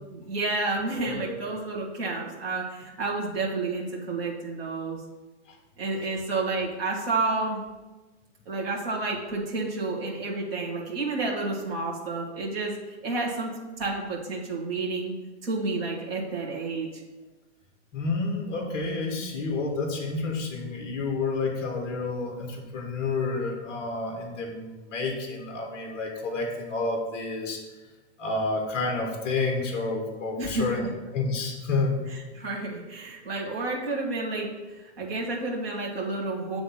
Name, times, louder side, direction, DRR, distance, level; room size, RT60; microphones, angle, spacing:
voice 1, 0.1-5.0 5.8-7.6 8.5-15.2 15.4-17.0 30.4-30.9 32.1-36.6, right 3 dB, 55° right, -5 dB, 1.8 m, -30 dB
voice 2, 1.0-1.3 17.9-27.6 28.2-30.8 31.1-31.9, left 3 dB, 15° left, 1 dB, 0.8 m, -29 dB
7.9 x 3.4 x 5.6 m, 1.2 s
supercardioid pair, 180°, 36 cm